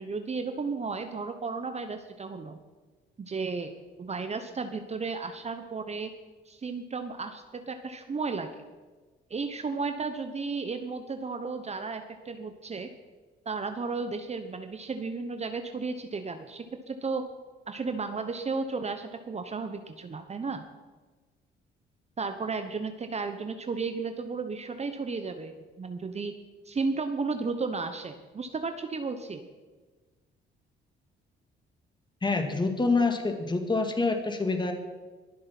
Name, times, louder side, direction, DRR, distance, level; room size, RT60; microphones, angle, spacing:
voice 1, 0.0-2.6 3.2-3.7 4.0-6.1 6.5-8.5 9.3-12.9 13.5-17.2 17.7-20.6 22.2-26.3 26.6-29.5, right 4 dB, 35° right, 7 dB, 1.1 m, -34 dB
voice 2, 32.2-34.7, left 3 dB, 20° left, 5 dB, 2.2 m, -26 dB
22.5 x 7.7 x 6.0 m, 1.3 s
cardioid pair, 90°, 20 cm